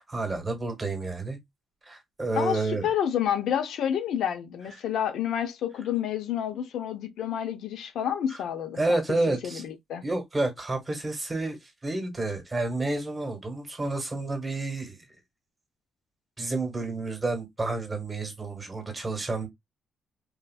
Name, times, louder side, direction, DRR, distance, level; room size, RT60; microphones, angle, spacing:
voice 1, 0.0-1.4 1.8-2.9 4.7-4.8 8.3-8.4 8.7-9.6 10.0-15.1 16.4-19.5, right 2 dB, 15° right, 1.5 m, -30 dB
voice 2, 2.4-9.0 9.5-10.0, left 9 dB, 75° left, 0.6 m, -29 dB
3.6 x 2.6 x 2.2 m
cardioid pair, 105°, 0 cm